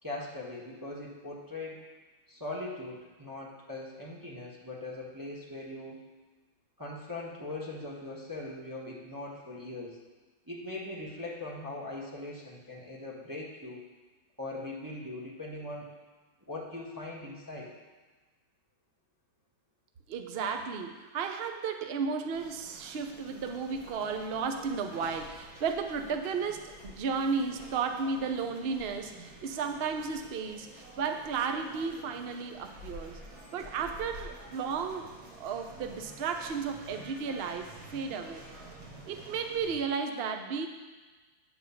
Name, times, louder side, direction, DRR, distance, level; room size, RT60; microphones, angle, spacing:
voice 1, 0.0-1.8 2.3-6.0 6.8-10.0 10.4-13.8 14.4-15.9 16.5-17.7, left 2 dB, 15° right, -5 dB, 1.0 m, -40 dB
voice 2, 20.1-33.2 33.5-35.1 35.4-38.4 39.1-40.7, right 5 dB, 85° right, 5 dB, 0.5 m, -34 dB
sound 1, 22.3-39.8, right 1 dB, 55° right, 2.0 m, -50 dB
9.0 x 4.5 x 7.0 m, 1.3 s
omnidirectional pair, 2.1 m